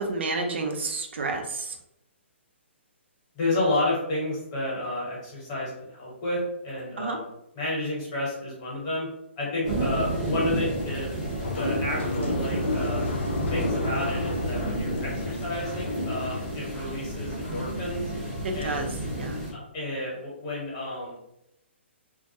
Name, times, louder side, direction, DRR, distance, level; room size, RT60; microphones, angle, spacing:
voice 1, 0.0-1.8 7.0-7.2 9.7-9.9 18.6-18.9 19.1-19.4, right 3 dB, 65° right, 3 dB, 0.4 m, -30 dB
voice 2, 3.3-7.3 7.5-9.1 9.4-11.1 11.5-13.0 13.5-18.0 18.5-18.8 19.7-21.2, left 1 dB, 20° left, -6 dB, 0.9 m, -31 dB
sound 1, 9.6-19.5, equal, 5° right, 0.6 m, -31 dB
sound 2, 10.7-16.7, left 2 dB, 70° left, 0.5 m, -34 dB
2.2 x 2.1 x 2.6 m, 0.82 s
hypercardioid pair, 175°, 7 cm